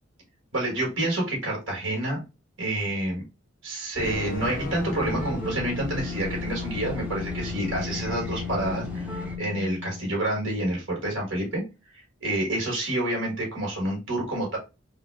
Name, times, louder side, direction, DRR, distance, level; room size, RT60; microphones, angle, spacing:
voice 1, 0.5-2.2 2.6-3.2 3.6-11.6 11.9-14.6, right 1 dB, 70° right, -1 dB, 1.5 m, -28 dB
sound 1, 3.9-9.4, equal, 10° right, 0.7 m, -36 dB
sound 2, 4.0-10.1, left 5 dB, 45° left, 0.4 m, -35 dB
3.5 x 2.2 x 3.2 m, 0.28 s
head